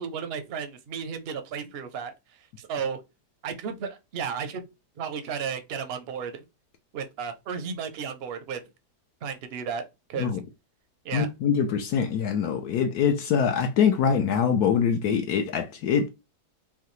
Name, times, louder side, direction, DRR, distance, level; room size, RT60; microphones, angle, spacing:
voice 1, 0.0-2.1 2.6-3.0 3.4-4.7 5.0-6.5 6.9-8.6 9.2-10.4 11.0-11.3, right 6 dB, 60° right, 0.6 m, -33 dB
voice 2, 11.1-16.1, left 7 dB, 75° left, 1.1 m, -24 dB
5.6 x 2.3 x 3.1 m
omnidirectional pair, 1.8 m